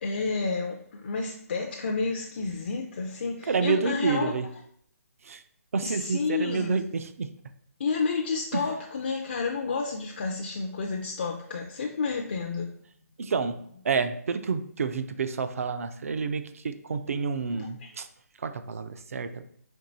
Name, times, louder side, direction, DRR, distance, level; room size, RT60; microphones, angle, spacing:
voice 1, 0.0-4.3 5.8-6.8 7.8-12.8 17.5-18.0, left 4 dB, 40° left, 0.4 m, -30 dB
voice 2, 3.5-4.5 5.3-5.4 5.7-7.3 8.5-8.6 13.2-13.5 13.8-18.1 18.4-19.5, right 5 dB, 60° right, 0.5 m, -29 dB
4.5 x 3.0 x 3.9 m
hypercardioid pair, 170°, 9 cm